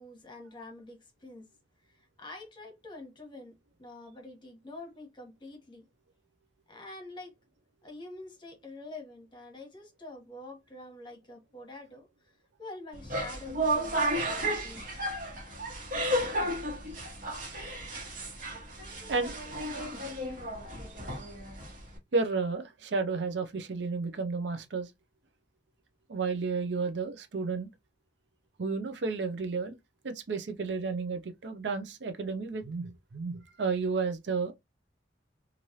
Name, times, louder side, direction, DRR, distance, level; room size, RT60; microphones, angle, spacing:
voice 1, 0.0-1.5 1.8-5.8 6.7-7.3 7.8-15.0, left 2 dB, 25° left, 1.0 m, -47 dB
sound 1, 12.9-22.0, right 1 dB, 50° right, 1.4 m, -33 dB
voice 2, 22.1-24.9 26.1-27.7 28.6-29.8 30.0-34.5, right 4 dB, 70° right, 0.6 m, -32 dB
3.1 x 2.5 x 2.8 m
head